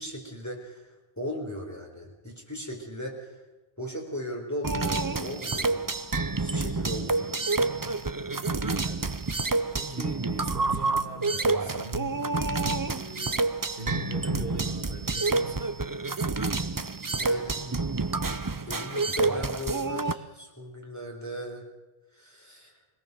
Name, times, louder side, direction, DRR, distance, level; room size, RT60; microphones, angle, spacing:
voice 1, 0.0-3.4 3.8-5.9 6.4-7.3 17.2-17.6 18.7-21.7 22.1-22.7, equal, 15° left, 0 dB, 4.1 m, -37 dB
sound 1, 4.6-20.1, right 3 dB, 25° right, 0.5 m, -28 dB
voice 2, 8.3-15.7, right 2 dB, 55° right, 4 dB, 1.9 m, -41 dB
22.0 x 17.5 x 6.8 m, 1.1 s
omnidirectional pair, 1.2 m